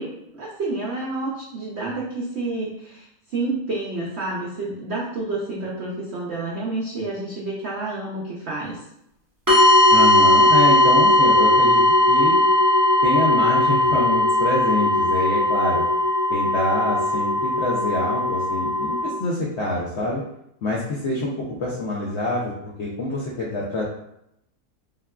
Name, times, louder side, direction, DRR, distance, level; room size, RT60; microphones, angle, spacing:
voice 1, 0.0-8.8, right 2 dB, 80° right, -4 dB, 0.6 m, -29 dB
sound 1, 9.5-19.1, left 1 dB, 20° right, 0.5 m, -18 dB
voice 2, 9.9-11.8 12.1-12.4 13.0-15.8 16.3-20.2 20.6-23.8, left 2 dB, 75° left, -4 dB, 0.6 m, -26 dB
3.5 x 2.2 x 2.2 m, 0.79 s
omnidirectional pair, 1.7 m